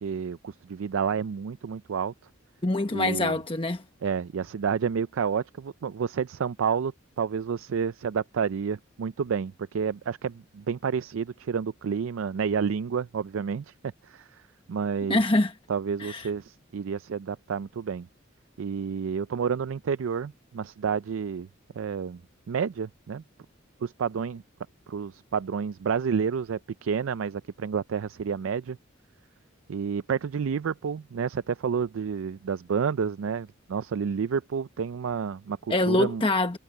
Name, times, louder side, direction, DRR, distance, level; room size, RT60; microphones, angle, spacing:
voice 1, 0.0-2.1 2.9-3.4 4.0-13.7 14.0-14.4 14.7-15.2 15.7-18.1 18.6-21.5 21.7-22.2 22.5-23.2 23.8-24.4 24.9-28.8 29.7-36.2, right 6 dB, 90° right, 0.4 m, -30 dB
voice 2, 2.6-3.8 15.1-15.5 16.0-16.3 35.7-36.6, left 2 dB, 25° left, 1.1 m, -24 dB
head